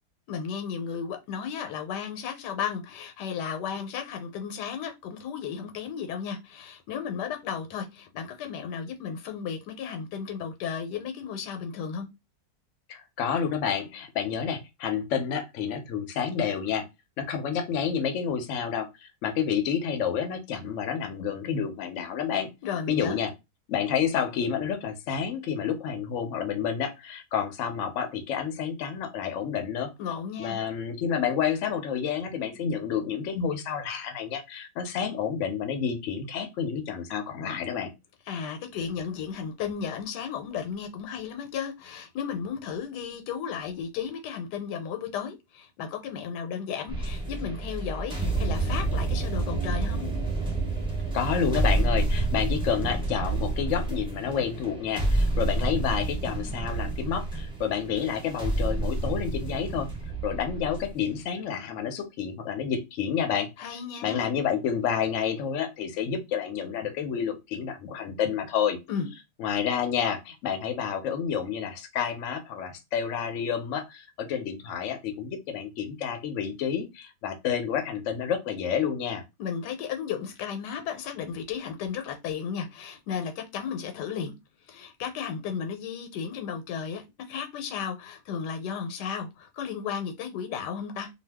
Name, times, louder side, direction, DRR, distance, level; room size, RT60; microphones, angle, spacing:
voice 1, 0.3-12.1 22.6-23.2 30.0-30.6 38.3-50.1 63.6-64.4 68.9-69.1 79.4-84.3 84.7-91.1, left 7 dB, 85° left, 1.3 m, -34 dB
voice 2, 12.9-16.8 17.2-22.5 22.9-23.3 23.7-29.9 30.4-37.9 51.1-59.9 60.2-63.5 64.0-68.8 69.4-79.2, left 7 dB, 65° left, 0.8 m, -29 dB
sound 1, 46.9-61.2, right 2 dB, 5° right, 0.6 m, -29 dB
2.6 x 2.3 x 3.4 m
omnidirectional pair, 1.7 m